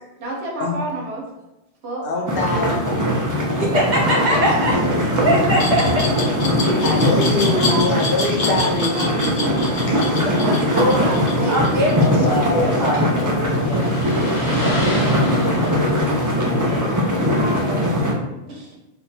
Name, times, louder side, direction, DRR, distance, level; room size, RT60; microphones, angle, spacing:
voice 1, 0.2-1.2 1.8-2.0 4.3-5.3 6.6-6.9 8.5-9.1 9.9-12.3 17.2-18.0 18.4-18.8, right 2 dB, 75° right, -2 dB, 1.1 m, -30 dB
voice 2, 2.0-3.6 4.6-5.3 6.5-10.5 12.0-17.1, left 2 dB, 60° left, -1 dB, 0.7 m, -27 dB
sound 1, 2.3-18.1, equal, 30° right, 0.3 m, -20 dB
voice 3, 3.6-4.7 5.2-6.0 7.5-7.8 10.2-11.1 11.5-11.9 12.5-13.3, equal, 45° right, -3 dB, 0.9 m, -21 dB
Glass, 5.6-12.4, left 3 dB, 75° left, 1.1 m, -28 dB
sound 2, 8.3-13.2 13.7-15.9, right 1 dB, 20° left, 0.8 m, -31 dB
2.7 x 2.2 x 4.0 m, 0.98 s
omnidirectional pair, 1.1 m